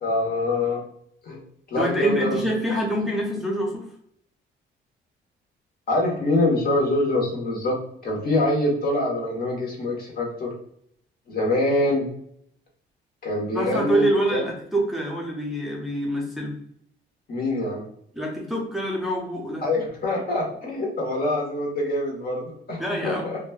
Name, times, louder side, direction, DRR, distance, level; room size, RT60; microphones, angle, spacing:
voice 1, 0.0-0.8 1.2-1.4 1.7-2.4 5.9-10.5 11.3-12.1 13.2-14.4 17.3-17.8 19.6-23.4, left 2 dB, 50° left, -1 dB, 1.1 m, -24 dB
voice 2, 1.8-3.9 13.5-16.5 18.1-19.6 22.8-23.3, right 1 dB, ahead, -2 dB, 0.6 m, -26 dB
3.1 x 2.2 x 2.3 m, 0.68 s
cardioid pair, 90°, 20 cm